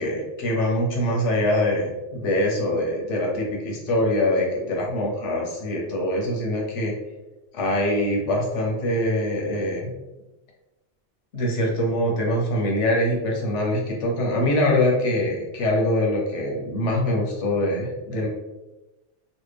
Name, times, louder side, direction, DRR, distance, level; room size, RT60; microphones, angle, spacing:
voice 1, 0.0-6.9 7.5-9.9 11.3-18.3, left 1 dB, 90° left, -1 dB, 1.2 m, -24 dB
3.2 x 2.3 x 3.3 m, 1.0 s
omnidirectional pair, 1.2 m